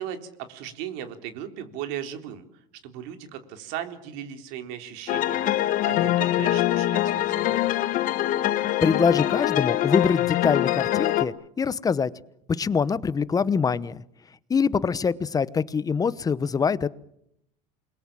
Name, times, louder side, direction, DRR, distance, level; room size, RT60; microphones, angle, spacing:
voice 1, 0.0-7.7, right 10 dB, 75° right, 7 dB, 3.7 m, -37 dB
sound 1, 5.1-11.3, left 14 dB, 55° left, 1.4 m, -24 dB
voice 2, 8.8-12.1 12.6-14.0 14.5-16.9, left 5 dB, 20° left, 17 dB, 1.0 m, -24 dB
28.0 x 21.5 x 7.5 m, 0.76 s
supercardioid pair, 120°, 17 cm